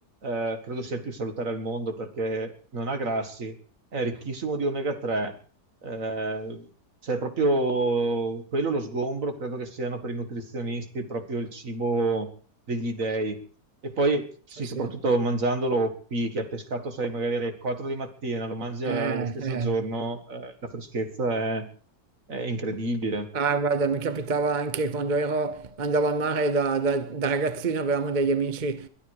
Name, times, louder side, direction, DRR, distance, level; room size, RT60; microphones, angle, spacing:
voice 1, 0.2-3.6 3.9-5.3 5.8-6.7 7.0-12.3 12.7-13.4 13.8-21.7 22.3-23.3, right 2 dB, 50° right, 2.1 m, -29 dB
voice 2, 14.6-14.9 18.8-19.7 23.3-28.9, right 4 dB, 35° right, 0.9 m, -26 dB
22.0 x 12.5 x 4.8 m
omnidirectional pair, 1.8 m